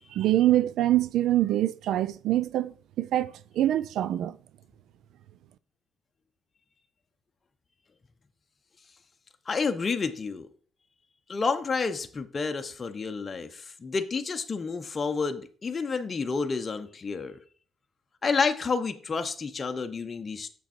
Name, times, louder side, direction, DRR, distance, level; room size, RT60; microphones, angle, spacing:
voice 1, 0.1-4.4, right 13 dB, 80° right, 0.4 m, -25 dB
voice 2, 9.5-10.5 11.3-17.4 18.2-20.5, left 4 dB, 35° left, 0.8 m, -30 dB
7.1 x 5.9 x 4.3 m
cardioid pair, 90°, 0 cm